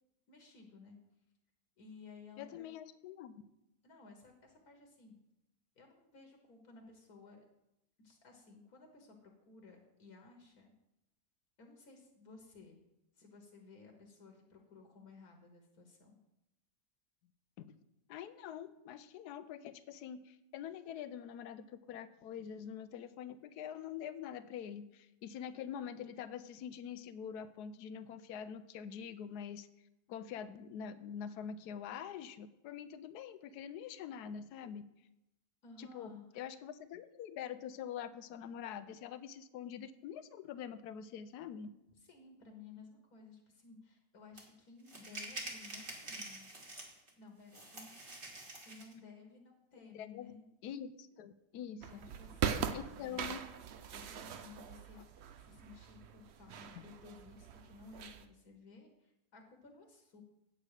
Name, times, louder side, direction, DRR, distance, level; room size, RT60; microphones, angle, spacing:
voice 1, 0.3-1.0 1.8-2.7 3.8-5.2 5.8-7.4 8.0-10.7 11.6-12.8 13.1-16.2 35.6-36.3 42.0-46.5 47.2-47.9 48.6-50.4 51.7-53.4 53.9-60.2, left 4 dB, 70° left, 3 dB, 1.6 m, -56 dB
voice 2, 2.4-3.4 17.6-17.8 18.1-29.7 30.1-34.8 35.8-41.7 49.8-50.3 50.6-52.1 52.7-53.4 56.7-56.8, left 8 dB, 85° left, 13 dB, 1.1 m, -45 dB
sound 1, 44.4-44.5 44.9-47.1 47.5-48.9, right 2 dB, 35° right, 1.7 m, -46 dB
sound 2, 51.8-58.2, right 8 dB, 60° right, 0.7 m, -41 dB
8.4 x 8.0 x 4.9 m, 0.89 s
omnidirectional pair, 1.7 m